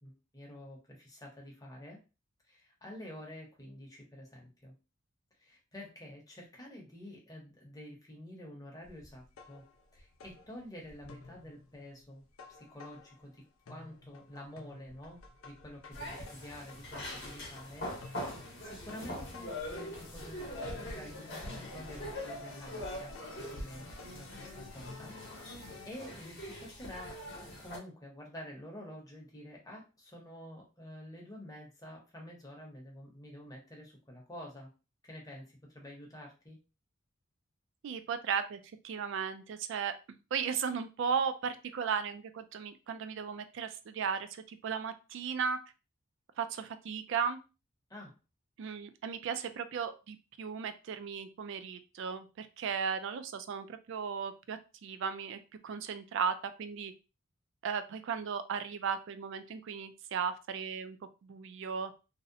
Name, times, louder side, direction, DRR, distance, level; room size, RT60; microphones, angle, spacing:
voice 1, 0.0-2.0 2.5-4.7 5.4-9.6 9.9-12.2 12.5-23.1 23.4-27.2 27.6-34.7 35.0-36.6 47.9-48.1, left 1 dB, 15° left, -1 dB, 0.7 m, -49 dB
sound 1, 8.8-13.4 13.7-25.9, left 3 dB, 80° left, 0.5 m, -52 dB
sound 2, 15.9-27.8, left 1 dB, 55° left, 0.8 m, -43 dB
voice 2, 37.8-45.6 46.4-47.4 48.6-56.9 57.6-61.0 61.2-61.9, right 6 dB, 60° right, 11 dB, 0.3 m, -36 dB
2.7 x 2.0 x 2.5 m, 0.31 s
head